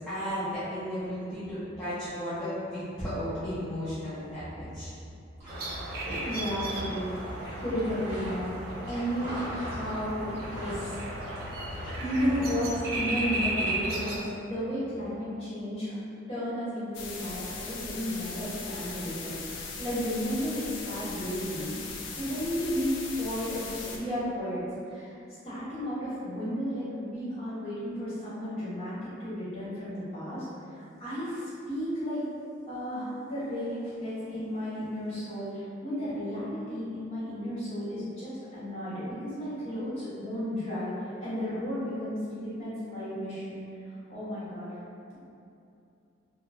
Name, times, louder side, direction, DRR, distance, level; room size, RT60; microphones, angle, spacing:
voice 1, 0.0-4.9 12.2-12.3 14.9-15.3, equal, 5° left, -16 dB, 0.5 m, -34 dB
sound 1, 5.4-12.8, equal, 35° right, 1.1 m, -41 dB
sound 2, 5.5-14.2, right 1 dB, 55° right, 0.4 m, -35 dB
voice 2, 6.2-11.2 12.0-16.0 16.3-19.4 19.8-25.1 25.4-28.9 29.2-30.4 30.7-32.2 32.7-40.9 41.2-43.6 44.1-44.7, equal, 30° left, -14 dB, 1.2 m, -33 dB
sound 3, 16.9-24.0, left 4 dB, 70° left, 0.3 m, -39 dB
2.9 x 2.1 x 2.3 m, 2.6 s
head